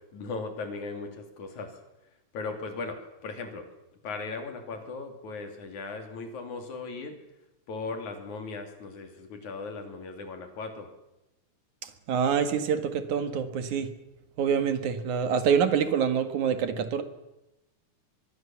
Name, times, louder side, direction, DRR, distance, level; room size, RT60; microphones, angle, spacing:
voice 1, 0.1-1.7 2.3-3.7 4.0-7.2 7.7-10.9, left 3 dB, 85° left, 5 dB, 4.4 m, -37 dB
voice 2, 12.1-13.9 14.4-17.0, right 7 dB, 85° right, 9 dB, 3.2 m, -26 dB
25.0 x 22.0 x 7.2 m, 0.96 s
omnidirectional pair, 3.3 m